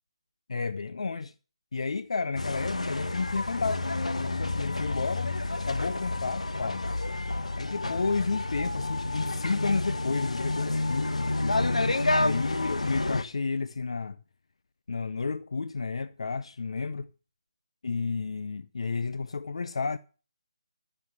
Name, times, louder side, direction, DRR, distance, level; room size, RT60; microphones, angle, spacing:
voice 1, 0.5-1.3 1.7-3.9 4.2-5.3 5.6-6.8 7.6-14.2 14.9-17.1 17.8-20.0, left 4 dB, 60° left, 0.6 m, -31 dB
sound 1, 2.4-13.2, left 2 dB, 85° left, 1.4 m, -29 dB
15.5 x 7.3 x 6.0 m
figure-of-eight pair, 155°, 3 cm